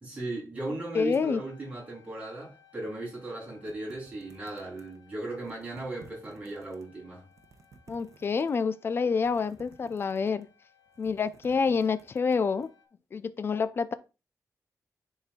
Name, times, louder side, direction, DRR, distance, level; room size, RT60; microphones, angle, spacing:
voice 1, 0.0-7.3, right 2 dB, 20° right, 3.1 m, -37 dB
voice 2, 0.9-1.4 7.9-10.5 11.0-12.7 13.1-13.9, left 5 dB, 40° left, 0.5 m, -27 dB
sound 1, 1.4-12.8, left 7 dB, 80° left, 1.8 m, -63 dB
sound 2, 3.7-5.0 5.4-6.8 7.2-8.7 9.2-10.5 10.9-12.7, right 5 dB, 60° right, 0.9 m, -56 dB
10.0 x 4.2 x 2.3 m
wide cardioid pair, 170°, 6 cm